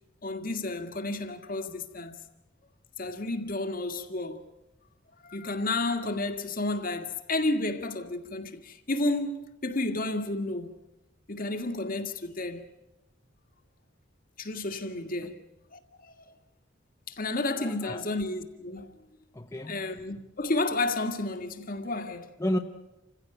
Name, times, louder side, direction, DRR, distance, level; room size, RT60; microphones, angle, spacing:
voice 1, 0.2-2.2 3.0-4.4 5.2-10.7 11.3-12.6 14.4-15.4 15.7-16.1 17.1-18.9 19.7-22.3, left 2 dB, 45° left, 1.9 m, -31 dB
voice 2, 17.6-18.1 19.3-19.9 22.4-22.6, equal, 15° left, 0.9 m, -32 dB
28.0 x 16.0 x 9.0 m
head